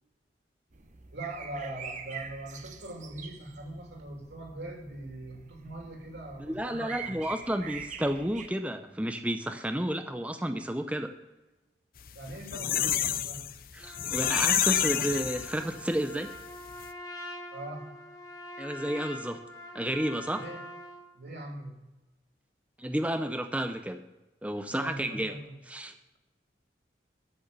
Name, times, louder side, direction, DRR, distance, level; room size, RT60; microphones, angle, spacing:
sound 1, 0.7-8.5, right 6 dB, 40° right, 0.9 m, -45 dB
voice 1, 1.1-7.3 12.1-13.4 17.5-17.9 20.3-20.6 21.1-21.8 24.7-25.5, right 1 dB, 70° right, 0 dB, 3.2 m, -41 dB
voice 2, 6.4-11.1 13.7-16.4 18.6-19.4 19.7-20.4 22.8-24.1 24.4-25.3 25.7-25.9, right 1 dB, 5° right, 7 dB, 0.6 m, -31 dB
sound 2, 12.1-15.9 16.3-16.4 16.7-16.8, left 10 dB, 50° left, 0.6 m, -28 dB
Trumpet, 13.8-21.0, left 1 dB, 20° left, 1.9 m, -44 dB
13.0 x 6.5 x 6.8 m, 1.1 s
head